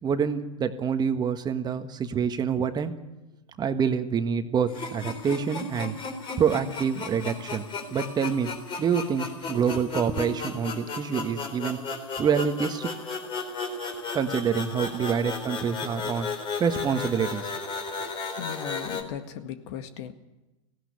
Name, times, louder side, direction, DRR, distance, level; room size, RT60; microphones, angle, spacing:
voice 1, 0.0-2.9 3.6-5.9 6.4-7.6 7.9-8.5 8.8-11.8 12.2-12.9 14.1-16.3 16.6-17.5, right 7 dB, 25° right, 8 dB, 1.4 m, -26 dB
sound 1, 4.7-19.0, left 4 dB, 30° left, 3.9 m, -34 dB
voice 2, 18.4-20.1, left 9 dB, 60° left, 9 dB, 1.8 m, -37 dB
18.0 x 16.5 x 9.7 m, 1.0 s
hypercardioid pair, 100°, 17 cm